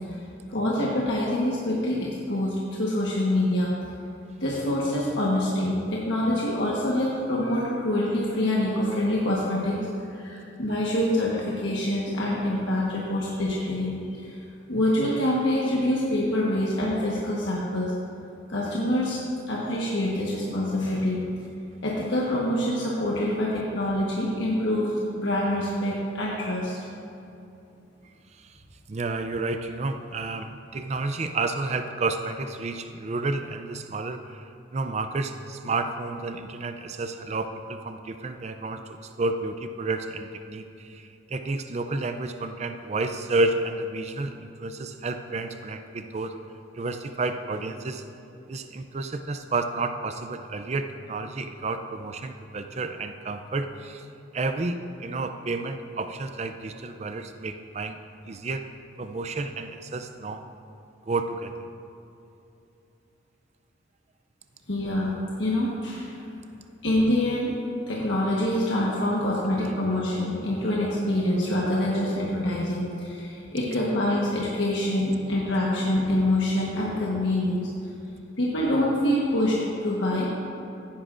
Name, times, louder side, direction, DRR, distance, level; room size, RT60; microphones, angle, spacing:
voice 1, 0.5-3.7 4.4-9.8 10.1-14.4 14.7-17.9 18.5-19.2 19.5-21.2 21.8-26.8 64.7-65.1 65.4-66.1 66.8-67.5 67.9-77.7 78.4-79.6 79.8-80.4, left 1 dB, 70° left, -5 dB, 1.3 m, -25 dB
voice 2, 28.9-34.2 34.7-38.8 39.2-41.0 41.3-46.3 46.7-48.1 48.5-54.1 54.3-58.0 58.3-58.6 59.0-60.4 61.1-61.5, right 3 dB, 35° right, 7 dB, 0.4 m, -30 dB
16.0 x 10.0 x 2.5 m, 2.8 s
head